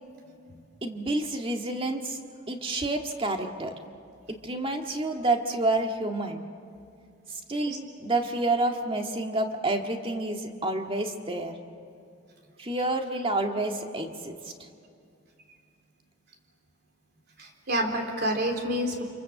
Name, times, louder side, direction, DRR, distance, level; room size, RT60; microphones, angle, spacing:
voice 1, 0.8-2.2 2.5-3.7 4.3-6.4 7.3-11.6 12.6-14.7, right 2 dB, 25° right, 3 dB, 1.9 m, -29 dB
voice 2, 17.4-19.0, equal, 55° right, 2 dB, 3.8 m, -28 dB
29.0 x 26.5 x 7.7 m, 2.4 s
head